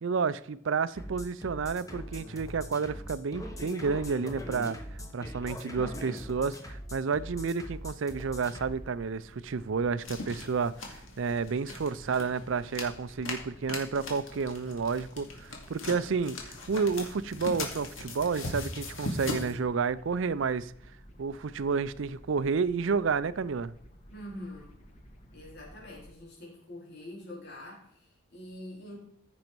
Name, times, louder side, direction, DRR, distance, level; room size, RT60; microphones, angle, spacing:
voice 1, 0.0-4.8 5.1-20.7 21.2-23.7, right 5 dB, 65° right, 0.5 m, -30 dB
sound 1, 1.0-8.8, equal, 15° left, 1.3 m, -41 dB
sound 2, 8.4-26.1, equal, 35° left, 1.6 m, -54 dB
sound 3, 10.0-19.5, left 2 dB, 75° left, 2.2 m, -40 dB
voice 2, 24.1-24.7 25.3-29.0, left 1 dB, 55° left, 4.0 m, -45 dB
14.5 x 6.3 x 4.5 m
head